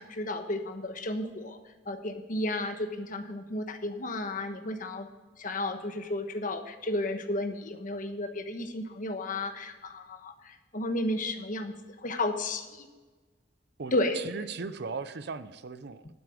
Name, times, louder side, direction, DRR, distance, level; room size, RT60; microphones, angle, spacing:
voice 1, 0.0-1.6 1.9-5.1 5.4-11.7 12.0-12.9 13.9-14.2, left 1 dB, 45° left, 7 dB, 1.2 m, -33 dB
voice 2, 13.8-16.1, right 4 dB, 60° right, 13 dB, 0.6 m, -38 dB
12.0 x 9.4 x 5.0 m, 1.3 s
head